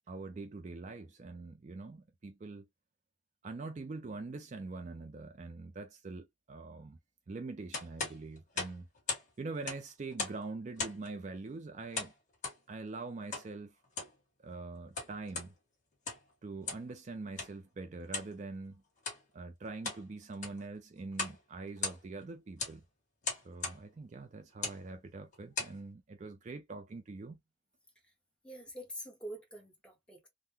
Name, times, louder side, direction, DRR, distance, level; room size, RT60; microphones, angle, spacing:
voice 1, 0.1-2.7 3.4-7.0 7.3-8.9 9.4-12.1 12.7-13.8 14.4-15.5 16.4-18.8 19.3-22.8 23.4-27.4, right 3 dB, 35° right, 0.4 m, -44 dB
sound 1, 7.7-9.3 9.6-10.4 10.8-11.1 11.9-12.6 13.3-13.5 13.8-14.2 14.8-15.5 15.9-16.3 16.6-16.9 17.4-17.5 18.1-18.3 19.0-19.2 19.6-20.0 20.3-20.7 21.1-21.4 21.7-22.2 22.6-22.8 23.2-23.8 24.5-24.8 25.3-25.8, left 4 dB, 40° left, 1.6 m, -38 dB
voice 2, 28.4-30.3, right 1 dB, 5° left, 0.9 m, -46 dB
3.6 x 2.1 x 2.7 m
head